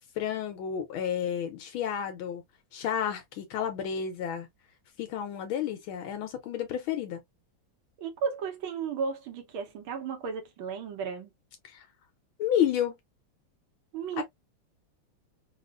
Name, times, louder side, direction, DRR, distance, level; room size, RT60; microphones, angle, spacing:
voice 1, 0.0-2.4 2.7-4.5 5.0-7.2 11.6-11.9 12.4-13.0 14.2-14.3, left 9 dB, 80° left, 1.5 m, -31 dB
voice 2, 8.0-11.3 13.9-14.2, right 6 dB, 75° right, 1.7 m, -34 dB
4.0 x 2.4 x 2.4 m
omnidirectional pair, 2.3 m